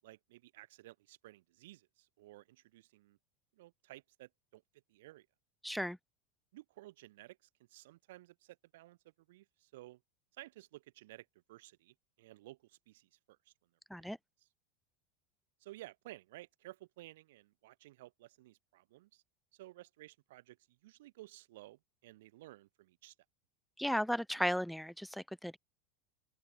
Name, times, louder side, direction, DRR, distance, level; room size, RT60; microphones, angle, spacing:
voice 1, 0.0-3.2 3.5-4.6 4.9-5.3 6.5-9.0 9.3-10.0 10.4-13.5 13.9-14.1 14.4-14.5 15.6-19.2 19.5-23.1, right 17 dB, 80° right, 6.8 m, -55 dB
voice 2, 5.6-6.0 13.9-14.2 23.8-25.6, equal, ahead, 0.5 m, -35 dB
open air
supercardioid pair, 140°, 0 cm